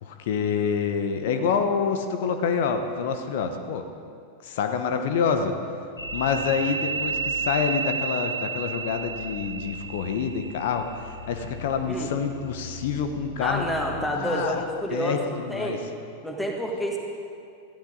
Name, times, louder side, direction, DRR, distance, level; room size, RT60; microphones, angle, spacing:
voice 1, 0.0-3.9 4.4-5.5 6.1-13.7 14.1-14.6 14.9-15.8, left 6 dB, 55° left, 7 dB, 1.1 m, -27 dB
sound 1, 6.0-14.6, right 4 dB, 80° left, 1.3 m, -33 dB
voice 2, 13.4-15.8 16.2-17.0, equal, 5° left, 0 dB, 2.2 m, -29 dB
18.5 x 14.0 x 4.0 m, 2.4 s
figure-of-eight pair, 90°, 0 cm